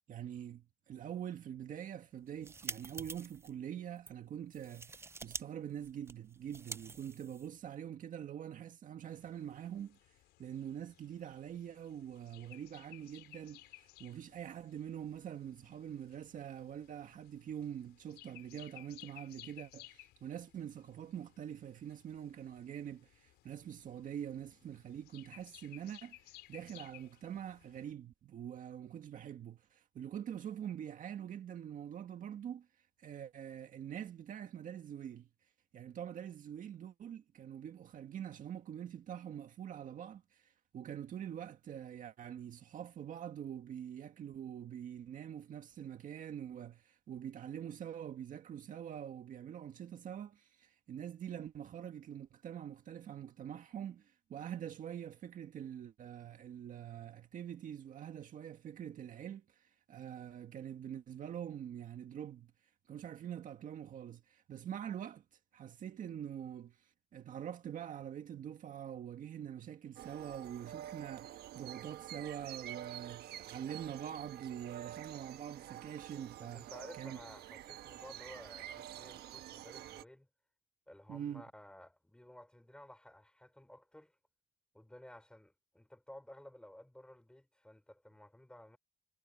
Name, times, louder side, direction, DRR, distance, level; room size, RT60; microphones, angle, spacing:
voice 1, 0.1-10.0 10.4-32.7 33.0-35.3 35.7-62.5 62.9-65.2 65.5-77.2 81.1-81.4, right 9 dB, 50° right, 1.8 m, -45 dB
sound 1, 2.2-3.5 4.0-4.1 4.5-5.4 5.7-7.7, right 3 dB, 15° right, 0.5 m, -47 dB
sound 2, 9.1-27.9, left 17 dB, 85° left, 5.4 m, -59 dB
sound 3, 70.0-80.0, right 12 dB, 70° right, 1.2 m, -48 dB
voice 2, 76.4-80.3 80.9-84.2 84.7-88.8, left 1 dB, 5° left, 5.1 m, -55 dB
cardioid pair, 110°, 17 cm